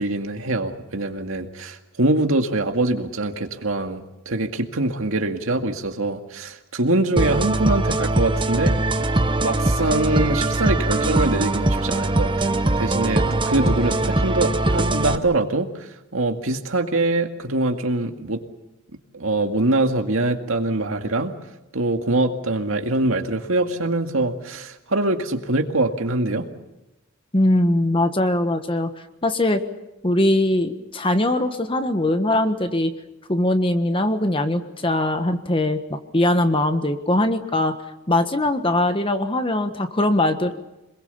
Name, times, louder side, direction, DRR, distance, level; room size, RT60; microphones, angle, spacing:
voice 1, 0.0-8.8 9.4-18.4 19.1-21.3 21.7-26.5, right 2 dB, 75° right, 5 dB, 2.1 m, -23 dB
sound 1, 7.2-15.2, right 2 dB, 25° right, 0.9 m, -21 dB
voice 2, 27.3-28.9 29.2-29.6 30.0-32.9 33.3-37.7 38.1-40.5, left 1 dB, 25° left, 8 dB, 1.5 m, -21 dB
27.0 x 21.5 x 7.1 m, 0.95 s
head